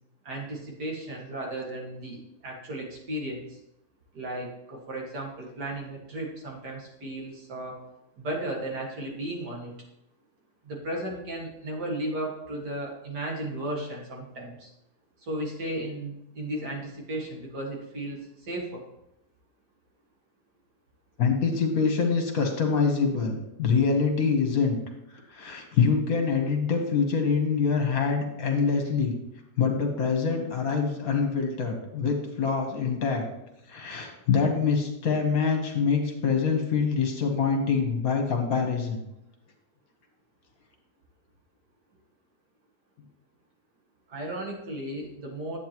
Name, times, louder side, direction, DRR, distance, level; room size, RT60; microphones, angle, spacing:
voice 1, 0.2-3.6 4.1-7.8 8.2-9.7 10.6-14.7 15.2-18.8 44.1-45.6, right 1 dB, 75° right, -2 dB, 2.5 m, -35 dB
voice 2, 21.2-24.8 25.3-29.2 29.6-33.3 33.7-39.0, left 5 dB, 60° left, 3 dB, 1.7 m, -25 dB
10.0 x 8.3 x 3.0 m, 0.86 s
omnidirectional pair, 1.8 m